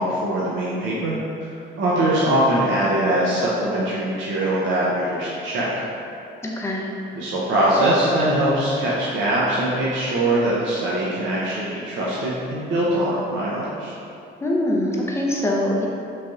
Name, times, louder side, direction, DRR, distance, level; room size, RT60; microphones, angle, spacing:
voice 1, 0.0-5.7 7.1-13.9, right 1 dB, 75° right, -7 dB, 0.5 m, -22 dB
voice 2, 6.4-6.9 14.4-15.9, left 1 dB, 15° left, -2 dB, 0.4 m, -23 dB
3.2 x 2.6 x 2.3 m, 2.6 s
cardioid pair, 90°, 20 cm